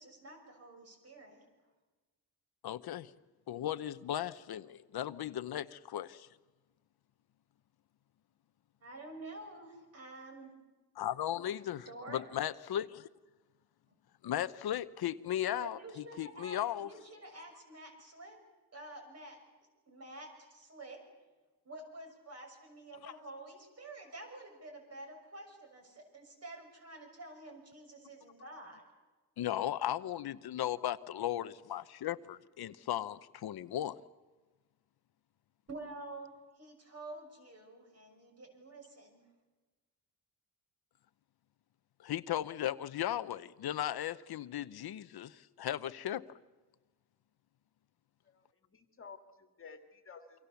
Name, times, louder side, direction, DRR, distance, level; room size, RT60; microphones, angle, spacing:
voice 1, 0.0-1.5 8.8-10.5 11.8-12.3 13.9-14.0 15.5-18.4 18.7-19.4 19.9-21.0 21.6-28.9 35.7-39.2, right 2 dB, 40° right, 3 dB, 6.4 m, -49 dB
voice 2, 2.6-3.1 3.5-6.3 11.0-13.1 14.2-15.8 16.2-16.9 23.0-23.1 29.4-34.0 42.0-46.4, left 11 dB, 75° left, 13 dB, 0.8 m, -36 dB
voice 3, 48.3-50.5, left 5 dB, 35° left, 6 dB, 2.0 m, -54 dB
28.5 x 24.0 x 7.0 m, 1.2 s
wide cardioid pair, 150°, 39 cm